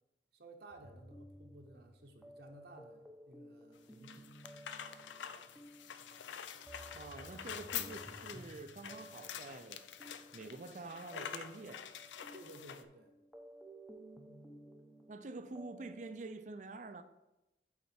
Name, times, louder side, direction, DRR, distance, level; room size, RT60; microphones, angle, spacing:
voice 1, 0.3-4.3 12.3-13.1, right 2 dB, 65° right, 0.8 m, -56 dB
sound 1, 0.7-16.2, equal, ahead, 0.6 m, -56 dB
sound 2, 3.8-12.9, left 8 dB, 90° left, 0.4 m, -46 dB
voice 2, 6.9-9.8 10.3-11.9 15.1-17.0, right 3 dB, 45° right, 0.4 m, -47 dB
8.4 x 4.2 x 4.4 m
head